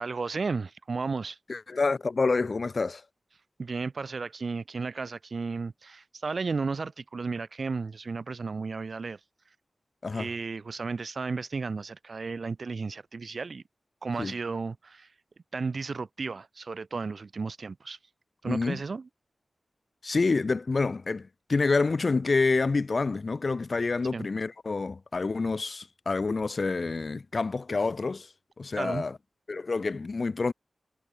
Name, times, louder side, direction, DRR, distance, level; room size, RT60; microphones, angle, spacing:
voice 1, 0.0-1.4 3.6-9.2 10.1-13.6 14.0-15.1 15.5-18.0 18.4-19.1 24.1-24.3 28.8-29.0, right 4 dB, 60° right, 1.7 m, -33 dB
voice 2, 1.5-3.0 10.0-10.3 14.2-14.3 18.4-18.8 20.0-28.3 28.6-29.2 29.5-30.5, left 3 dB, 50° left, 0.3 m, -27 dB
wide cardioid pair, 105°, 0 cm